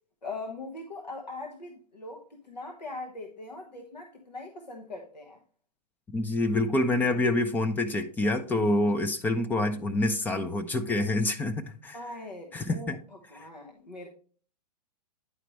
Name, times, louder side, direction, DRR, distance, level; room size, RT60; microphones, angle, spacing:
voice 1, 0.2-5.4 11.9-14.1, left 2 dB, 85° left, 2 dB, 1.2 m, -41 dB
voice 2, 6.1-12.0 12.5-13.0, left 2 dB, 10° left, 7 dB, 0.4 m, -27 dB
9.4 x 4.9 x 3.1 m, 0.42 s
figure-of-eight pair, 115°, 21 cm